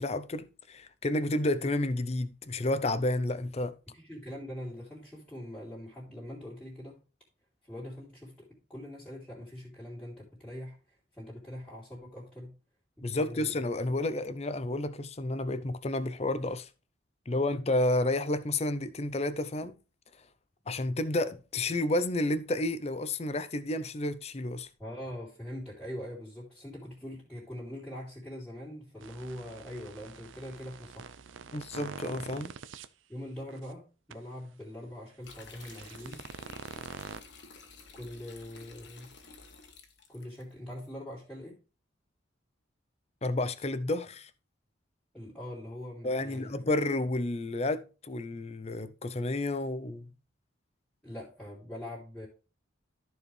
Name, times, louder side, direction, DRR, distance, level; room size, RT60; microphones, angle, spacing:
voice 1, 0.0-3.8 13.0-16.7 17.3-19.8 20.7-24.7 31.5-32.5 43.2-44.3 46.0-50.1, left 2 dB, 35° left, 0.6 m, -31 dB
voice 2, 3.9-7.0 7.6-12.6 13.0-13.6 24.8-31.2 33.1-36.2 37.9-39.1 40.1-41.6 45.1-46.7 51.0-52.3, left 1 dB, 5° left, 2.8 m, -43 dB
sound 1, 29.0-32.9 33.5-33.7 34.1-34.2 35.4-37.2, right 5 dB, 80° right, 0.5 m, -45 dB
sound 2, 35.2-40.4, left 4 dB, 65° left, 1.5 m, -52 dB
13.5 x 4.7 x 3.3 m
head